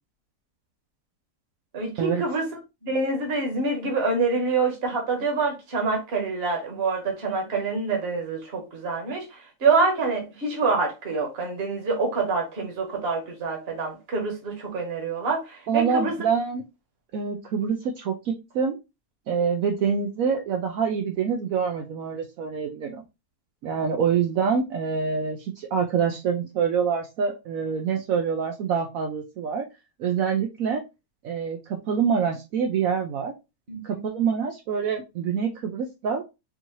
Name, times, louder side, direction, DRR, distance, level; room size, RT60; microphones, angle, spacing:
voice 1, 1.7-2.5 2.8-16.2 33.7-34.1, right 4 dB, 45° right, 1.4 m, -26 dB
voice 2, 15.7-16.6 17.1-18.8 19.3-23.0 23.6-29.7 30.0-30.8 31.2-33.3 33.8-36.2, right 6 dB, 70° right, 1.0 m, -26 dB
4.6 x 2.8 x 2.9 m
omnidirectional pair, 1.6 m